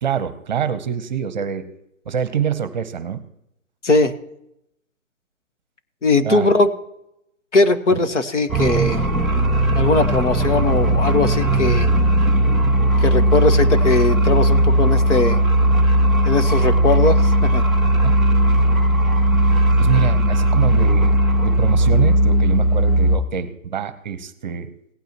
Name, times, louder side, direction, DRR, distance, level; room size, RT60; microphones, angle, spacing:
voice 1, 0.0-1.7 2.1-3.2 6.2-6.5 18.0-18.1 19.8-21.1 21.4-24.7, right 8 dB, 35° right, 12 dB, 0.9 m, -25 dB
voice 2, 6.0-6.7 7.5-9.0 9.8-11.9 13.0-15.4 16.2-17.7, left 3 dB, 60° left, 7 dB, 1.4 m, -19 dB
sound 1, 8.5-23.2, right 1 dB, ahead, 0.3 m, -17 dB
17.5 x 9.2 x 3.0 m, 0.79 s
figure-of-eight pair, 140°, 41 cm